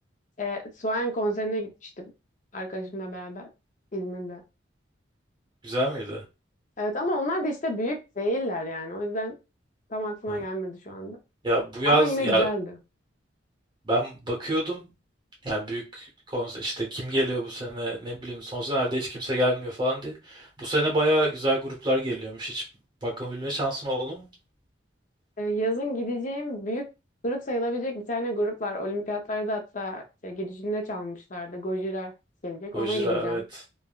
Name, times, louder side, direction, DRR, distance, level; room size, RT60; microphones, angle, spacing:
voice 1, 0.4-1.9 2.5-3.5 3.9-4.4 6.8-9.3 9.9-11.2 11.8-12.8 25.4-26.8 27.2-32.1 32.4-33.4, equal, 40° left, 0.5 m, -30 dB
voice 2, 5.6-6.2 10.3-10.4 11.4-12.5 13.8-14.9 15.4-22.6 23.0-24.3 32.7-33.6, right 1 dB, 25° right, 0.8 m, -27 dB
3.3 x 2.1 x 2.3 m
head